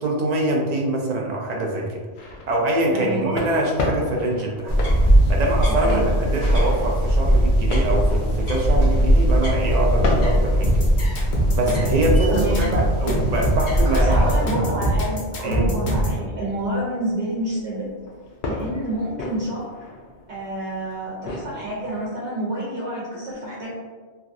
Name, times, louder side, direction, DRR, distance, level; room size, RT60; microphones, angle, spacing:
voice 1, 0.0-2.0 2.5-4.8 5.3-10.8 11.5-14.3 15.4-15.7, right 1 dB, 55° right, -1 dB, 0.5 m, -24 dB
sound 1, 2.2-22.0, left 2 dB, 60° left, 0.6 m, -35 dB
voice 2, 2.9-3.3 5.7-6.0 12.3-12.7 13.9-17.9 18.5-19.7 20.3-23.7, right 1 dB, 85° right, -6 dB, 1.1 m, -28 dB
sound 2, 4.7-14.4, equal, 30° left, 0.8 m, -20 dB
sound 3, 10.6-16.2, right 1 dB, 75° left, 1.0 m, -23 dB
3.2 x 2.2 x 2.5 m, 1.4 s
omnidirectional pair, 1.1 m